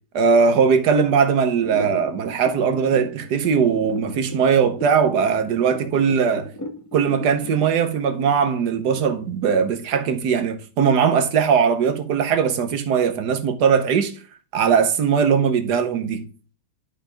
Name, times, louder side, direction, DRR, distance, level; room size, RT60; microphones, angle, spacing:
voice 1, 0.1-6.5 6.9-14.1 14.5-16.3, right 6 dB, 75° right, 1.5 m, -20 dB
sound 1, 1.6-9.4, equal, 15° left, 0.9 m, -35 dB
11.5 x 5.0 x 3.4 m
omnidirectional pair, 1.8 m